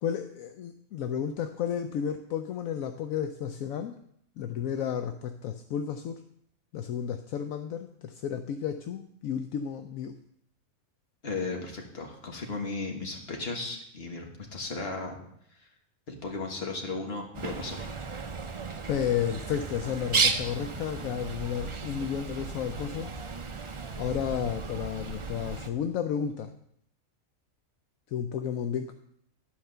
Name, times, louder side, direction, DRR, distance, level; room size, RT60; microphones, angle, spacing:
voice 1, 0.0-3.9 4.4-6.2 6.7-10.2 18.9-23.1 24.0-26.5 28.1-28.9, left 8 dB, 75° left, 8 dB, 1.0 m, -32 dB
voice 2, 11.2-15.2 16.1-17.9, left 3 dB, 45° left, 2 dB, 1.7 m, -35 dB
Bird, 17.3-25.7, right 4 dB, 45° right, 0.4 m, -34 dB
11.5 x 5.0 x 6.6 m, 0.71 s
omnidirectional pair, 1.5 m